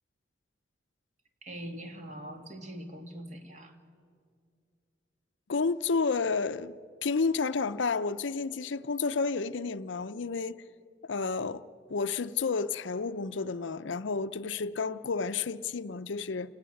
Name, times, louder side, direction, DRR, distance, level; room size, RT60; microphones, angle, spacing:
voice 1, 1.4-3.8, right 1 dB, 40° right, 2.1 m, -42 dB
voice 2, 5.5-10.6 11.0-11.6 11.9-16.5, left 4 dB, 80° left, 0.6 m, -31 dB
29.0 x 18.0 x 7.7 m
head